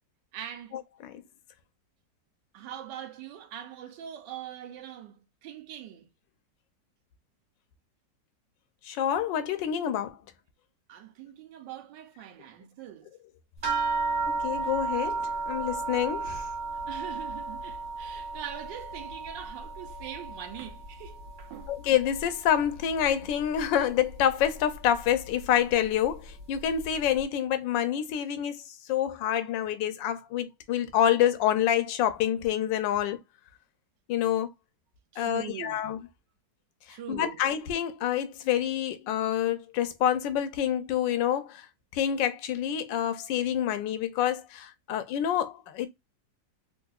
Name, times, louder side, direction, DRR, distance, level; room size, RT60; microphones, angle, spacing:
voice 1, 0.3-0.7 2.5-6.1 10.9-13.1 16.9-21.7 35.1-35.8 36.9-37.4, right 10 dB, 85° right, 1.3 m, -42 dB
voice 2, 8.9-10.2 14.4-16.4 21.7-28.6 28.9-33.2 34.1-34.5 35.2-36.0 37.1-41.5 41.9-45.9, left 10 dB, 85° left, 1.3 m, -27 dB
sound 1, 13.6-22.5 22.8-23.6 24.4-24.5 24.9-25.1, right 4 dB, 40° right, 1.6 m, -34 dB
3.6 x 2.5 x 2.3 m
omnidirectional pair, 1.9 m